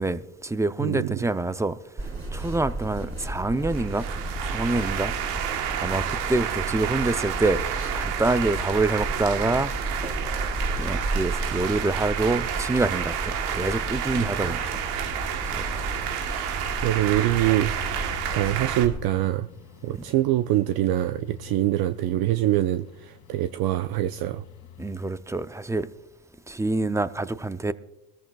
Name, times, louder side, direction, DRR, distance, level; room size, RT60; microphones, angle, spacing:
voice 1, 0.0-1.8 2.3-4.1 4.5-5.1 5.8-7.6 7.9-9.7 10.0-10.3 10.8-14.8 15.5-15.8 19.9-20.0 24.8-25.9 26.5-27.7, right 2 dB, 5° right, 0.5 m, -26 dB
sound 1, 2.0-19.0, right 2 dB, 30° right, 4.7 m, -33 dB
sound 2, 3.7-18.9, right 10 dB, 85° right, 1.3 m, -30 dB
sound 3, 11.8-25.0, left 12 dB, 40° left, 2.0 m, -46 dB
voice 2, 14.1-14.5 16.8-17.7 18.0-19.5 19.8-24.4, right 14 dB, 55° right, 0.6 m, -24 dB
21.5 x 14.0 x 2.3 m
hypercardioid pair, 80°, 46 cm